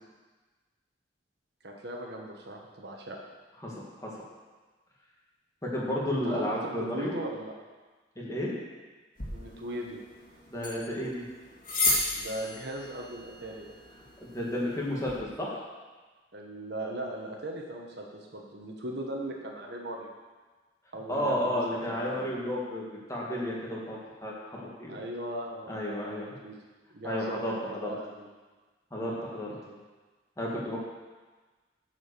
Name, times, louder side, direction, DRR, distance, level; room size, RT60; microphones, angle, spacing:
voice 1, 1.6-3.2 6.2-7.5 9.3-10.0 12.2-13.7 16.3-20.1 20.9-22.3 24.9-26.6 26.9-28.3 29.6-29.8, right 1 dB, 65° right, 0 dB, 1.3 m, -38 dB
voice 2, 5.6-7.2 8.2-8.5 10.5-11.2 14.2-15.6 21.1-22.8 23.1-25.0 25.7-26.3 27.0-27.6 27.8-27.9 28.9-29.6 30.4-30.8, left 1 dB, 20° left, -4 dB, 1.8 m, -32 dB
sound 1, 9.2-15.2, left 2 dB, 50° left, 2.5 m, -34 dB
9.0 x 5.1 x 6.9 m, 1.3 s
head